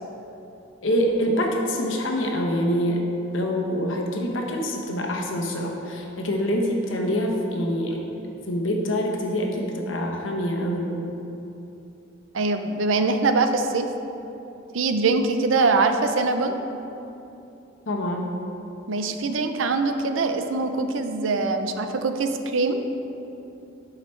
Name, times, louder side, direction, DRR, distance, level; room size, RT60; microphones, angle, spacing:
voice 1, 0.8-3.0 3.3-8.0 8.5-11.1 17.9-18.3, equal, 80° left, 1 dB, 1.0 m, -25 dB
voice 2, 12.3-13.9 14.7-16.6 18.9-22.9, right 3 dB, 85° right, 7 dB, 0.5 m, -23 dB
11.5 x 4.9 x 3.2 m, 2.9 s
head